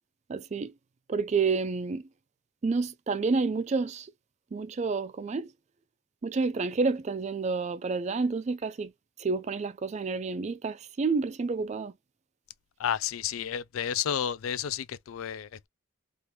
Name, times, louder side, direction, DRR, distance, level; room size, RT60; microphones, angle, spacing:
voice 1, 0.3-0.7 1.1-2.1 2.6-4.1 4.5-5.5 6.2-8.9 9.2-11.9, right 4 dB, 35° right, 0.3 m, -29 dB
voice 2, 12.8-15.7, left 9 dB, 80° left, 0.4 m, -31 dB
2.9 x 2.5 x 3.2 m
head